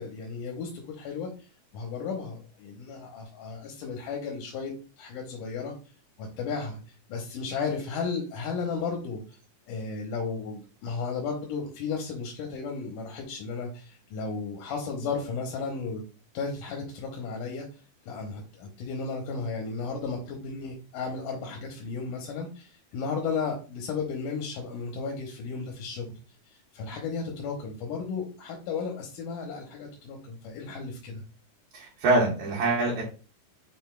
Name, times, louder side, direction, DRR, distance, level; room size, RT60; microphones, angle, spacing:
voice 1, 0.0-1.3 1.7-5.8 6.2-6.8 7.1-9.2 9.7-16.0 16.3-17.7 18.1-26.1 26.7-31.2, left 5 dB, 85° left, 1 dB, 2.4 m, -34 dB
voice 2, 31.7-33.0, right 2 dB, 70° right, -5 dB, 2.3 m, -24 dB
6.4 x 3.6 x 2.2 m, 0.35 s
omnidirectional pair, 3.7 m